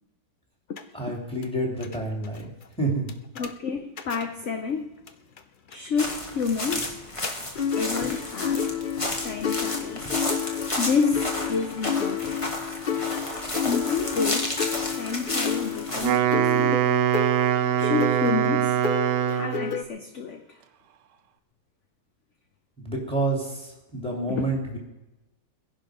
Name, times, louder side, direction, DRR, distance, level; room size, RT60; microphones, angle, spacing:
sound 1, 0.8-0.9 1.4-1.5 1.8-2.0 2.2-2.4 3.1-3.5 4.0-4.3 5.1-5.2 5.4-5.5 5.7-5.9 6.7-6.9 7.2-7.3 7.6-19.8, left 7 dB, 85° left, 0.4 m, -30 dB
voice 1, 0.9-2.5 2.8-3.1 22.8-24.8, right 2 dB, 5° left, 3.0 m, -28 dB
voice 2, 3.4-4.9 5.7-7.0 7.7-8.8 9.2-10.1 10.8-12.4 13.6-14.5 15.0-16.9 17.8-18.8 19.3-20.4 24.3-24.5, left 5 dB, 50° left, 1.0 m, -29 dB
sound 2, 6.0-16.2, left 1 dB, 20° left, 1.3 m, -32 dB
Wind instrument woodwind instrument, 15.9-19.8, right 10 dB, 75° right, 1.3 m, -23 dB
20.5 x 11.0 x 5.1 m
omnidirectional pair, 1.9 m